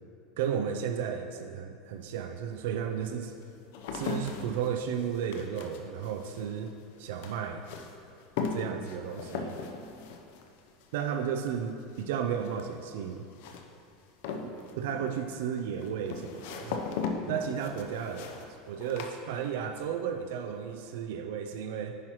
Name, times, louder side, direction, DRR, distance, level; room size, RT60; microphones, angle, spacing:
voice 1, 0.4-3.3 3.9-7.6 8.5-9.6 10.9-13.2 14.4-16.8 17.3-18.4 18.7-22.0, right 8 dB, 75° right, 6 dB, 0.4 m, -34 dB
sound 1, 1.9-2.0 2.7-19.9 20.1-20.7, left 5 dB, 70° left, 0.7 m, -39 dB
9.5 x 5.6 x 3.0 m, 2.5 s
supercardioid pair, 135°, 0 cm